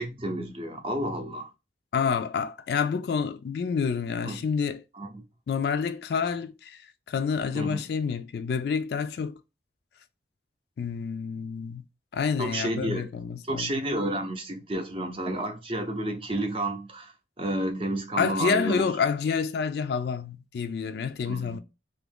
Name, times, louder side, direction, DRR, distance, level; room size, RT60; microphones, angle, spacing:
voice 1, 0.0-1.5 4.2-4.4 4.9-5.2 7.5-7.8 12.4-13.1 13.4-18.9 21.3-21.6, right 1 dB, 30° right, 0.6 m, -31 dB
voice 2, 1.9-4.8 5.5-9.4 10.8-11.8 12.1-13.7 18.2-21.6, left 6 dB, 60° left, 0.3 m, -28 dB
2.8 x 2.4 x 3.5 m
head